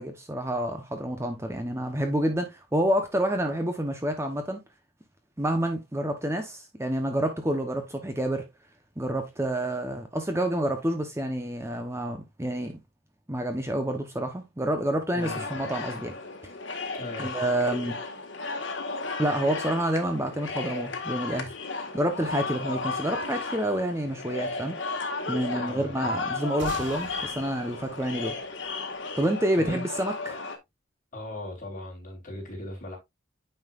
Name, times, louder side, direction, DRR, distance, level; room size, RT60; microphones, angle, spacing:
voice 1, 0.0-4.6 5.4-8.5 9.0-12.8 13.3-16.1 17.2-18.0 19.2-21.5 21.9-24.8 25.3-28.3 29.2-30.4, right 1 dB, 15° right, 0.9 m, -28 dB
voice 2, 15.1-15.5 16.9-17.3 25.6-26.2 29.5-29.8 31.1-33.0, left 1 dB, 40° left, 3.5 m, -38 dB
sound 1, 15.2-30.6, left 3 dB, 65° left, 1.7 m, -34 dB
sound 2, 26.6-29.4, right 3 dB, 65° right, 1.8 m, -44 dB
9.5 x 5.5 x 2.5 m
head